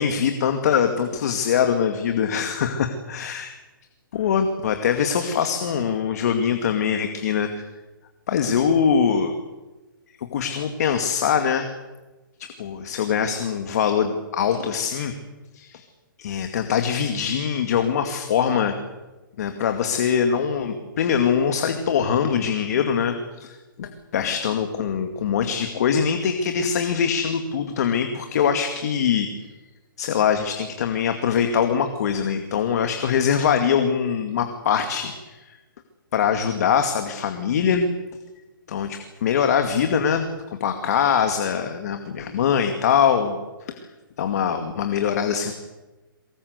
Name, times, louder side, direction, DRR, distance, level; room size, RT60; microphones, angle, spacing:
voice 1, 0.0-3.5 4.1-7.7 8.3-9.3 10.3-11.7 12.4-15.1 15.5-15.8 16.2-18.8 19.4-29.3 30.0-35.6 36.1-37.9 38.7-40.3 40.6-43.4 43.7-43.8 44.2-45.5, left 7 dB, 45° left, 6 dB, 2.3 m, -23 dB
23.5 x 21.5 x 8.1 m, 1.1 s
hypercardioid pair, 160°, 12 cm